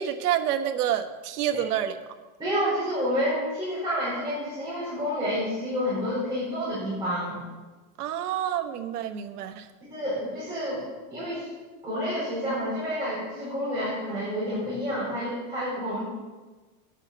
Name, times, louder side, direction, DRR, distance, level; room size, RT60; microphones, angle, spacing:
voice 1, 0.0-1.9 8.0-9.7, right 10 dB, 90° right, 7 dB, 1.3 m, -28 dB
voice 2, 2.4-7.4 9.9-10.8 11.1-11.5 11.8-16.0, equal, 10° right, -12 dB, 4.7 m, -29 dB
9.7 x 7.4 x 7.8 m, 1.3 s
supercardioid pair, 175°, 44 cm